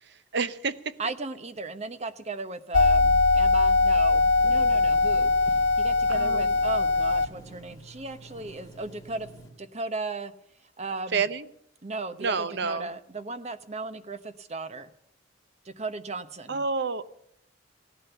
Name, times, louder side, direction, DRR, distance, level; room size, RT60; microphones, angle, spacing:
voice 1, 0.0-0.8 6.1-6.5 11.1-11.5 12.2-12.9 16.5-17.0, right 4 dB, 60° right, 14 dB, 0.8 m, -29 dB
voice 2, 1.0-5.3 5.8-9.3 9.6-10.3 10.8-11.2 11.8-14.9 15.6-16.6, right 3 dB, 35° right, 11 dB, 1.0 m, -36 dB
sound 1, 2.7-7.3, left 3 dB, 75° left, 0.9 m, -21 dB
Telephone, 4.4-9.5, right 2 dB, 20° left, 2.7 m, -47 dB
16.5 x 11.5 x 7.0 m, 0.78 s
head